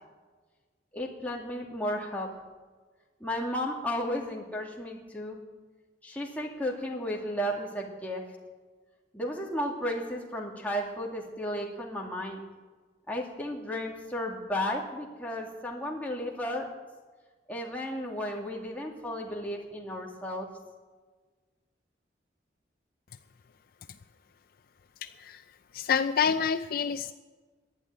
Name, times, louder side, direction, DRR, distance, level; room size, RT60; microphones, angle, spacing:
voice 1, 0.9-2.3 3.2-5.4 6.0-8.2 9.1-12.4 13.1-16.7 17.5-20.5, equal, 10° left, -2 dB, 2.3 m, -34 dB
voice 2, 25.0-25.4 25.7-27.1, left 6 dB, 55° left, 10 dB, 0.4 m, -28 dB
11.5 x 10.5 x 9.3 m, 1.4 s
head